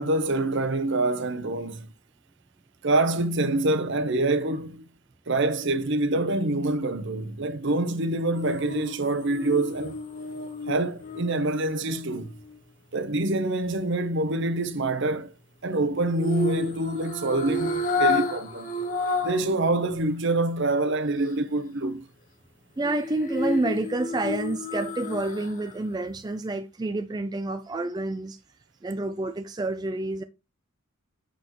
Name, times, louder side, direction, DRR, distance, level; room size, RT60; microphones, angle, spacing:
voice 1, 0.0-1.9 2.8-4.9 5.3-10.0 10.7-12.4 12.9-15.3 15.6-18.7 19.2-22.0, right 2 dB, 55° right, 0.8 m, -26 dB
sound 1, 8.3-12.6 16.2-19.5 19.9-20.0 22.8-25.7 26.1-26.2, left 2 dB, 40° left, 1.1 m, -31 dB
voice 2, 22.8-28.4 28.8-30.2, right 2 dB, 20° right, 0.3 m, -29 dB
7.8 x 6.1 x 3.0 m
head